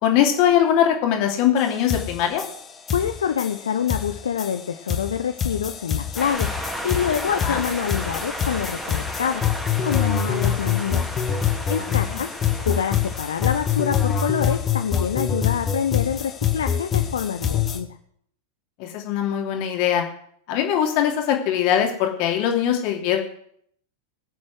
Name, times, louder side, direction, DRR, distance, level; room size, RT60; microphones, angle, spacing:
voice 1, 0.0-2.4 7.4-7.6 11.7-12.2 18.8-20.0 20.5-23.2, left 9 dB, 45° left, 2 dB, 2.8 m, -21 dB
sound 1, 1.6-1.7 1.9-17.8, left 8 dB, 25° left, 1.8 m, -25 dB
voice 2, 2.9-9.4 9.8-11.1 11.7-12.3 12.6-17.9, left 8 dB, 65° left, 8 dB, 0.7 m, -26 dB
sound 2, 6.2-14.8, equal, 5° right, 2.7 m, -34 dB
20.5 x 7.4 x 6.4 m, 0.67 s
figure-of-eight pair, 90°, 0 cm